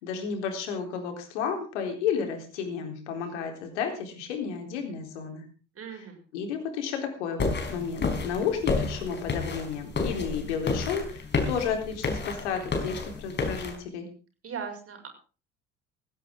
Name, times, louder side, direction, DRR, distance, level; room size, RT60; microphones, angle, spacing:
voice 1, 0.0-5.5 6.3-7.4 7.7-14.1, left 6 dB, 70° left, 4 dB, 4.1 m, -32 dB
voice 2, 5.7-6.2 14.4-15.1, right 6 dB, 40° right, 5 dB, 6.7 m, -38 dB
sound 1, 7.4-13.8, left 4 dB, 30° left, 5.1 m, -30 dB
17.0 x 16.5 x 3.9 m, 0.36 s
figure-of-eight pair, 55°, 36 cm